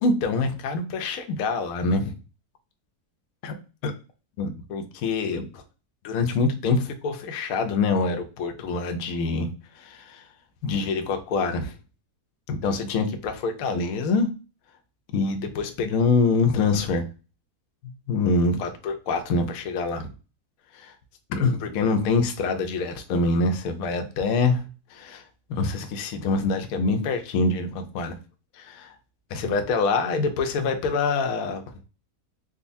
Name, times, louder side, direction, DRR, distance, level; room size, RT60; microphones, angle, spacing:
voice 1, 0.0-2.2 3.4-3.5 3.8-3.9 4.4-5.6 6.0-9.5 9.7-10.3 10.6-11.8 12.5-14.3 15.1-17.1 17.8-20.1 20.7-20.9 21.3-24.6 24.9-25.2 25.5-28.2 28.5-28.9 29.3-31.6, left 3 dB, 70° left, 1.0 m, -25 dB
3.7 x 2.3 x 2.5 m
omnidirectional pair, 1.7 m